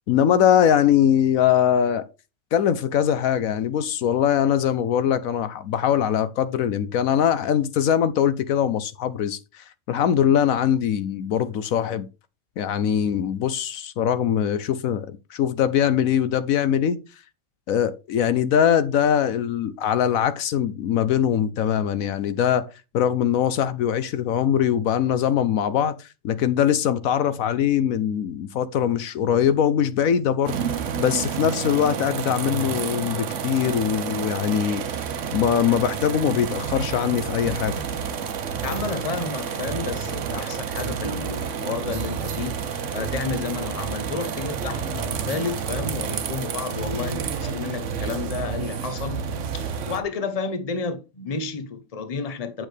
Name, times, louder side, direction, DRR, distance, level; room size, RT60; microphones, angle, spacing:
voice 1, 0.1-2.1 2.5-12.1 12.6-17.0 17.7-22.7 22.9-30.5 31.0-35.0 35.3-37.8, left 9 dB, 75° left, 1.1 m, -22 dB
sound 1, 30.4-50.0, right 6 dB, 65° right, 1.1 m, -29 dB
voice 2, 38.6-49.3 49.5-52.7, left 4 dB, 30° left, 0.9 m, -31 dB
8.6 x 6.3 x 3.3 m
omnidirectional pair, 1.5 m